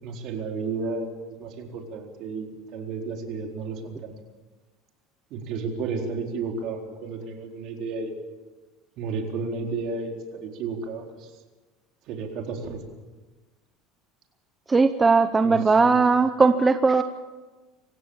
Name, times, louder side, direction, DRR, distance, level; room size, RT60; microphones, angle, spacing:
voice 1, 0.0-4.1 5.3-8.1 9.0-11.0 12.1-12.8 15.4-16.0, right 4 dB, 50° right, 2 dB, 4.2 m, -32 dB
voice 2, 14.7-17.0, right 4 dB, 15° right, 9 dB, 0.8 m, -19 dB
26.5 x 15.5 x 7.3 m, 1.2 s
cardioid pair, 145°, 0 cm